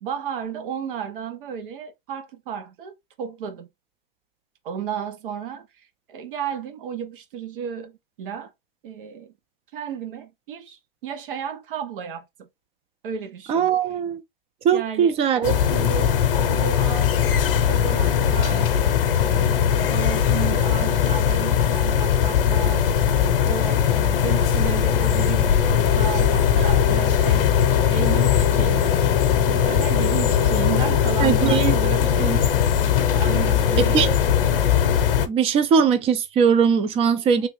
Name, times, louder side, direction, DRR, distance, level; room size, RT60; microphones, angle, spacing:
voice 1, 0.0-3.7 4.6-5.7 6.1-8.5 8.8-9.3 9.7-12.5 13.0-13.7 14.7-16.1 16.4-18.8 19.2-22.9 23.4-27.5 27.9-29.2 29.5-32.3 33.2-34.1 34.4-34.8 37.3-37.5, right 8 dB, 65° right, 0.9 m, -33 dB
voice 2, 13.5-14.2 14.6-15.4 31.2-31.8 32.2-32.4 33.9-34.1 35.3-37.5, right 7 dB, 20° right, 0.4 m, -20 dB
sound 1, 15.4-35.3, left 9 dB, 70° left, 0.7 m, -20 dB
sound 2, 25.8-32.0, left 7 dB, 40° left, 0.4 m, -29 dB
3.3 x 2.4 x 3.1 m
hypercardioid pair, 125°, 29 cm